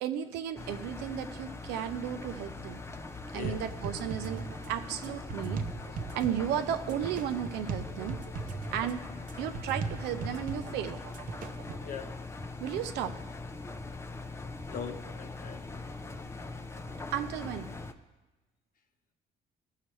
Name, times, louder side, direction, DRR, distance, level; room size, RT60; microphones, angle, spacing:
voice 1, 0.0-2.8 3.3-4.4 4.7-5.6 6.1-8.2 8.7-9.0 9.4-11.0 12.6-13.1 17.1-17.7, right 10 dB, 90° right, 8 dB, 0.7 m, -34 dB
Engine, 0.6-17.9, left 3 dB, 15° left, 0.5 m, -42 dB
sound 1, 3.4-11.9, right 4 dB, 55° right, 0.7 m, -39 dB
voice 2, 14.7-15.8, left 7 dB, 55° left, 6 dB, 1.0 m, -41 dB
15.0 x 5.7 x 3.2 m, 1.1 s
cardioid pair, 110°, 17 cm